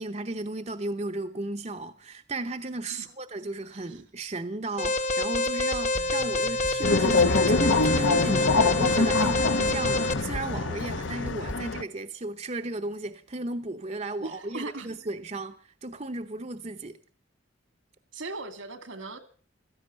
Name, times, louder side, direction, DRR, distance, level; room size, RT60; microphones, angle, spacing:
voice 1, 0.0-17.0, right 2 dB, 35° right, 0.8 m, -35 dB
voice 2, 3.7-4.0 14.2-14.9 18.1-19.2, right 3 dB, 80° right, 2.2 m, -38 dB
Alarm, 4.8-10.1, left 2 dB, 35° left, 1.2 m, -27 dB
sound 1, 5.7-11.6, equal, 5° right, 0.8 m, -42 dB
sound 2, 6.8-11.8, left 3 dB, 75° left, 0.9 m, -25 dB
16.0 x 14.0 x 6.5 m
head